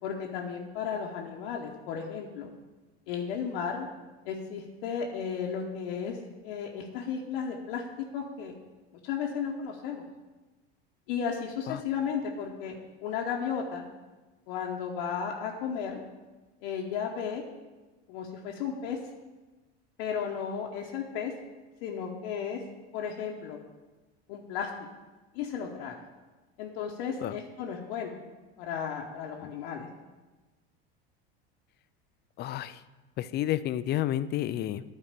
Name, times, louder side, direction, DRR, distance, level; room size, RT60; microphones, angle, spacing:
voice 1, 0.0-2.5 3.1-3.9 4.2-6.2 6.4-8.5 9.0-10.0 11.1-12.8 13.0-13.9 14.5-16.0 16.6-17.4 18.1-19.0 20.0-21.3 21.8-22.6 22.9-23.6 24.3-24.7 25.3-26.0 26.6-28.2 28.6-29.9, left 7 dB, 70° left, 0 dB, 1.0 m, -34 dB
voice 2, 32.4-32.8 33.2-34.8, left 12 dB, 35° left, 15 dB, 0.4 m, -30 dB
9.0 x 4.1 x 6.7 m, 1.2 s
hypercardioid pair, 95°, 31 cm